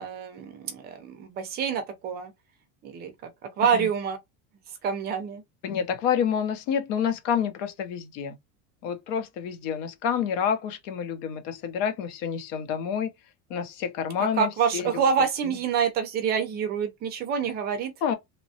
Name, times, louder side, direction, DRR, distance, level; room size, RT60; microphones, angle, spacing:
voice 1, 0.0-2.3 2.8-4.2 4.8-5.4 14.4-17.9, right 7 dB, 25° right, 0.5 m, -27 dB
voice 2, 5.6-8.4 8.8-13.1 13.5-14.9 18.0-18.1, left 8 dB, 60° left, 0.8 m, -28 dB
3.0 x 2.2 x 2.7 m
supercardioid pair, 165°, 43 cm